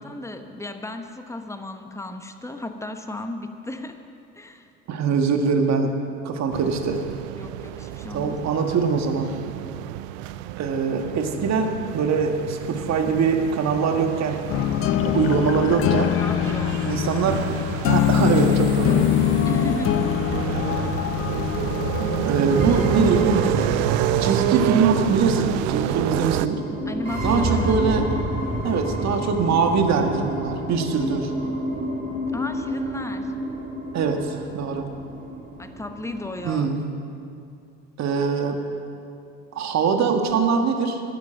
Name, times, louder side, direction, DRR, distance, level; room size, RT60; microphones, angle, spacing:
voice 1, 0.0-4.0 4.3-4.7 7.4-8.4 16.1-16.9 19.5-20.5 26.9-28.1 32.3-33.3 35.6-36.7, left 2 dB, 10° left, 7 dB, 1.0 m, -34 dB
voice 2, 4.9-5.9 6.2-7.0 8.1-9.3 10.6-14.4 15.0-16.2 16.8-17.4 17.8-19.1 22.3-23.7 24.2-26.6 27.2-28.0 28.6-31.3 33.9-34.9 36.4-36.8 38.0-38.6 39.5-41.0, right 5 dB, 45° right, 5 dB, 1.6 m, -22 dB
sound 1, 6.5-26.5, right 14 dB, 65° right, 0.5 m, -29 dB
sound 2, 14.5-24.7, left 12 dB, 40° left, 0.5 m, -24 dB
sound 3, 22.6-36.6, right 1 dB, 25° right, 3.3 m, -29 dB
10.5 x 9.8 x 7.5 m, 2.6 s
hypercardioid pair, 70°, 37 cm